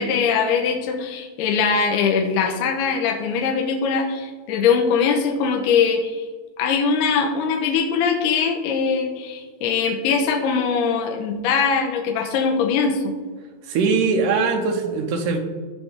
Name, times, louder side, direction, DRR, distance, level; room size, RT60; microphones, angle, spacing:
voice 1, 0.0-6.2 6.6-13.1, left 5 dB, 75° left, 2 dB, 2.8 m, -21 dB
voice 2, 13.7-15.4, right 4 dB, 75° right, 2 dB, 2.0 m, -21 dB
14.5 x 5.2 x 3.6 m, 1.5 s
omnidirectional pair, 5.0 m